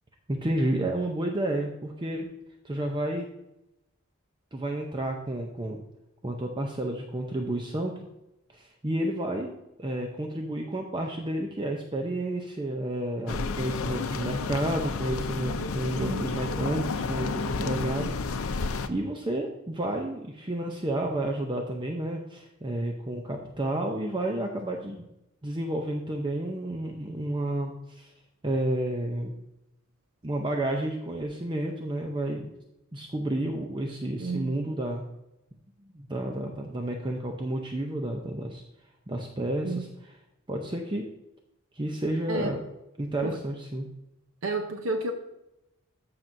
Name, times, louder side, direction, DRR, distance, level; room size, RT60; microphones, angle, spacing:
voice 1, 0.3-2.3 2.6-3.3 4.5-5.8 6.2-7.9 8.5-9.5 9.8-25.0 25.4-28.1 28.4-29.3 30.2-32.5 32.9-35.0 35.9-38.6 39.1-39.9 40.5-41.0 41.7-42.7 43.0-43.9, right 1 dB, 20° right, 2 dB, 0.6 m, -31 dB
sound 1, 13.3-18.9, left 4 dB, 90° left, 0.5 m, -31 dB
voice 2, 16.0-16.3 34.2-34.6 39.6-39.8 42.3-42.6 43.2-43.4 44.4-45.1, right 3 dB, 80° right, 5 dB, 0.8 m, -31 dB
13.5 x 6.0 x 2.6 m, 0.89 s
head